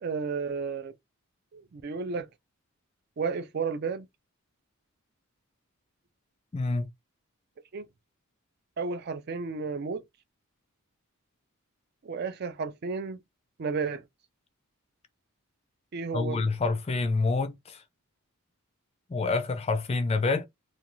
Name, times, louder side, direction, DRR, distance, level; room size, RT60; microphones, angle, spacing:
voice 1, 0.0-0.9 1.5-2.3 3.2-4.1 7.7-7.9 8.8-10.0 12.0-13.2 13.6-14.0 15.9-16.4, right 4 dB, 45° right, 0.4 m, -32 dB
voice 2, 6.5-6.9 16.1-17.8 19.1-20.5, left 3 dB, 25° left, 0.3 m, -27 dB
2.5 x 2.3 x 2.9 m
head